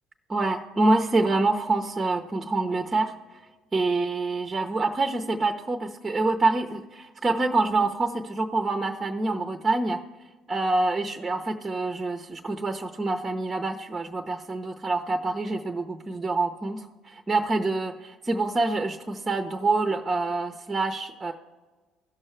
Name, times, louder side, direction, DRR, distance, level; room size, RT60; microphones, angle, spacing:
voice 1, 0.3-3.4 3.7-10.0 10.5-21.3, right 3 dB, 25° right, 4 dB, 0.7 m, -26 dB
16.0 x 6.4 x 3.2 m, 1.3 s
hypercardioid pair, 55°, 0 cm